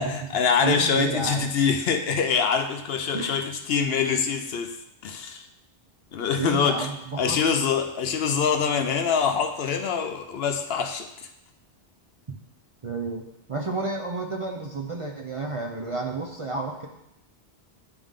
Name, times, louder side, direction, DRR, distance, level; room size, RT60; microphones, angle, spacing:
voice 1, 0.0-4.7 5.0-5.5 6.1-6.9 7.2-11.1, left 6 dB, 65° left, 6 dB, 0.8 m, -24 dB
voice 2, 0.6-1.5 3.1-3.4 6.4-7.4 10.7-10.8 12.8-16.9, right 3 dB, 35° right, 0 dB, 0.5 m, -31 dB
10.5 x 3.5 x 3.6 m, 0.82 s
omnidirectional pair, 1.2 m